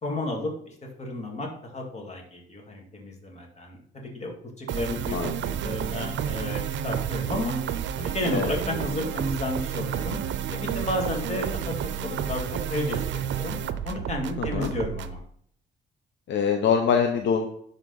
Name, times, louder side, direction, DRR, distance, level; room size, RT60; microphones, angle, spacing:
voice 1, 0.0-5.2 5.6-7.6 8.0-10.2 10.5-13.0 13.3-13.6 13.8-15.2, left 1 dB, 35° left, 0 dB, 2.5 m, -32 dB
sound 1, 4.7-15.2, right 9 dB, 70° right, 0.5 m, -31 dB
voice 2, 14.4-14.7 16.3-17.5, left 6 dB, 65° left, 4 dB, 0.9 m, -24 dB
11.0 x 4.1 x 4.0 m, 0.64 s
cardioid pair, 90°, 20 cm